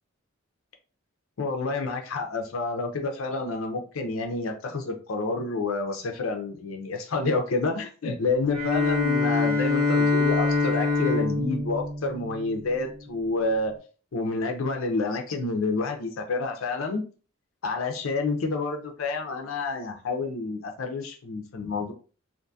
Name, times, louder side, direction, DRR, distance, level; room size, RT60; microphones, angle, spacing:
voice 1, 1.4-13.7 14.1-17.0 17.6-21.9, left 3 dB, 75° left, 4 dB, 0.5 m, -29 dB
Bowed string instrument, 8.5-12.9, left 3 dB, 85° right, 1.0 m, -25 dB
2.5 x 2.3 x 2.6 m, 0.37 s
head